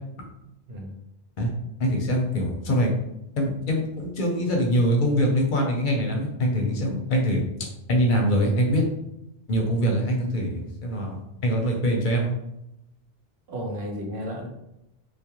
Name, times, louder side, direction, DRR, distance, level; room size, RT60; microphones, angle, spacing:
voice 1, 1.8-2.9 3.4-8.8 9.5-12.3, equal, 60° left, 1 dB, 0.6 m, -24 dB
voice 2, 13.5-14.5, equal, 90° right, 2 dB, 0.9 m, -33 dB
2.3 x 2.1 x 2.8 m, 0.85 s
omnidirectional pair, 1.0 m